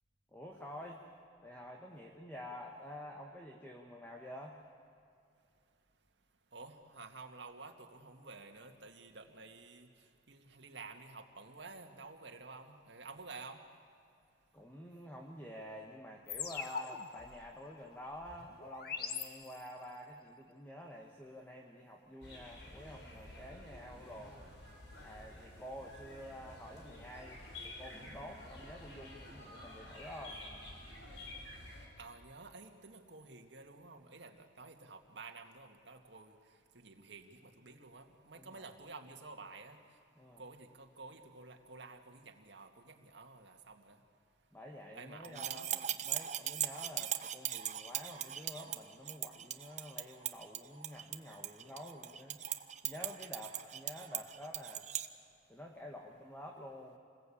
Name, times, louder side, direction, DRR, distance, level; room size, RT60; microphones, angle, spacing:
voice 1, 0.3-1.0 1.4-4.6 14.5-24.5 25.0-30.4 38.3-38.7 40.1-40.4 44.5-52.4 52.8-54.9 55.5-57.0, equal, 10° left, 0 dB, 1.6 m, -49 dB
voice 2, 6.5-9.9 10.3-13.6 32.0-36.4 36.7-39.8 40.4-44.0 44.9-45.8 54.1-54.2, right 3 dB, 65° right, 5 dB, 2.1 m, -51 dB
sound 1, 16.3-19.9, left 6 dB, 50° left, 1.5 m, -43 dB
sound 2, 22.2-31.9, left 1 dB, 65° left, 5.2 m, -51 dB
sound 3, 45.2-55.1, right 11 dB, 35° right, 0.8 m, -39 dB
28.0 x 20.5 x 8.8 m, 2.5 s
head